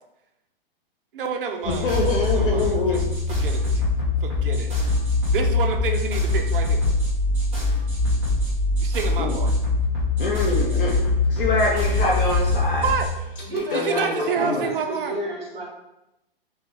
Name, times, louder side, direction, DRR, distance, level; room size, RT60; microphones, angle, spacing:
voice 1, 1.1-1.9 2.3-3.0 3.3-3.8 4.2-4.7 5.3-6.9 8.8-9.5 12.8-13.1 13.7-15.1, right 6 dB, 65° right, 4 dB, 0.6 m, -28 dB
voice 2, 1.6-3.0 9.2-9.4 10.2-12.8 13.7-14.6, left 3 dB, 65° left, -2 dB, 0.8 m, -25 dB
sound 1, 1.6-13.1, left 2 dB, 5° right, 0.5 m, -23 dB
voice 3, 13.4-15.6, right 2 dB, 50° right, -6 dB, 1.3 m, -30 dB
3.3 x 3.1 x 3.0 m, 0.90 s
hypercardioid pair, 170°, 29 cm